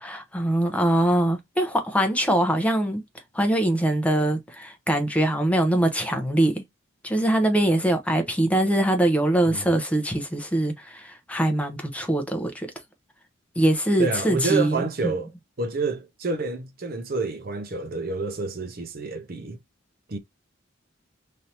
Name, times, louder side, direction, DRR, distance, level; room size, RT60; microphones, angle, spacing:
voice 1, 0.0-3.0 3.3-6.6 7.0-12.7 13.6-14.8 15.0-15.1, right 1 dB, 5° left, 0.6 m, -23 dB
voice 2, 14.0-15.3 15.6-19.6 20.1-20.2, right 3 dB, 50° right, 0.6 m, -28 dB
3.2 x 2.7 x 2.7 m
head